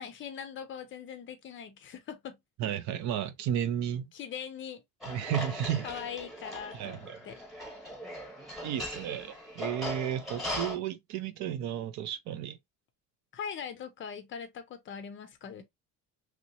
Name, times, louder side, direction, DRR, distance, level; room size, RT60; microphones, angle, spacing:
voice 1, 0.0-2.4 4.1-4.8 5.8-7.4 13.3-15.6, left 7 dB, 35° left, 0.5 m, -41 dB
voice 2, 2.6-4.1 5.1-5.9 6.7-7.2 8.6-12.6, right 10 dB, 55° right, 0.5 m, -33 dB
sound 1, 5.0-10.8, left 1 dB, ahead, 1.1 m, -39 dB
3.1 x 2.8 x 2.7 m
cardioid pair, 170°, 35 cm